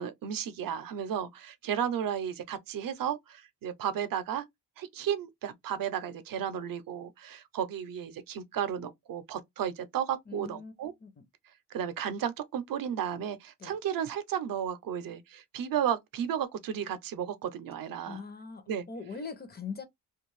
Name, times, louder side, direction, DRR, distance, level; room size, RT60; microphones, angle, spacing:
voice 1, 0.0-4.5 4.8-10.9 11.7-18.2 18.7-18.8, right 9 dB, 75° right, 0.6 m, -33 dB
voice 2, 10.3-11.2 13.6-13.8 18.1-19.9, left 5 dB, 30° left, 0.5 m, -42 dB
2.5 x 2.3 x 3.1 m
wide cardioid pair, 160°, 34 cm